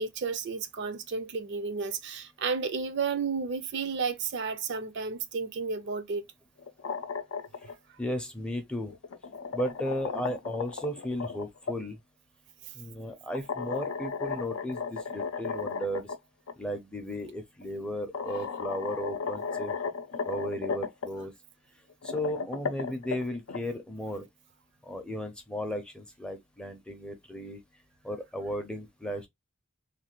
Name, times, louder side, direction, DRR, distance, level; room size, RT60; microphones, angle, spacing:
voice 1, 0.0-6.2, right 5 dB, 55° right, 0.4 m, -32 dB
sound 1, 6.6-7.7 8.9-11.8 13.3-16.2 16.5-16.6 17.6-17.7 18.1-21.1 21.9-23.6, left 5 dB, 75° left, 0.5 m, -35 dB
voice 2, 8.0-8.9 9.5-12.0 12.7-16.1 16.6-19.7 20.3-21.3 22.0-24.3 24.8-27.6 28.0-29.3, equal, 5° left, 0.5 m, -35 dB
3.1 x 2.2 x 2.9 m
head